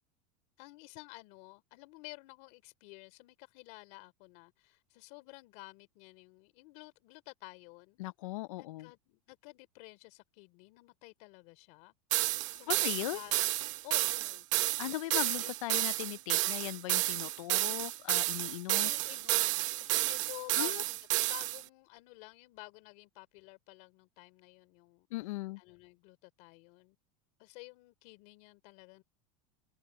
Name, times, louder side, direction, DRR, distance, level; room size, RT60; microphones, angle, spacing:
voice 1, 0.6-8.0 8.6-11.9 12.5-13.4 13.8-14.4 15.1-15.5 18.7-27.0 27.4-29.0, left 26 dB, 55° left, 3.2 m, -52 dB
voice 2, 8.0-8.9 12.7-13.2 14.8-18.9 20.5-20.8 25.1-25.6, left 18 dB, 90° left, 0.5 m, -38 dB
sound 1, 12.1-21.6, right 19 dB, 75° right, 0.8 m, -31 dB
open air
supercardioid pair, 155°, 16 cm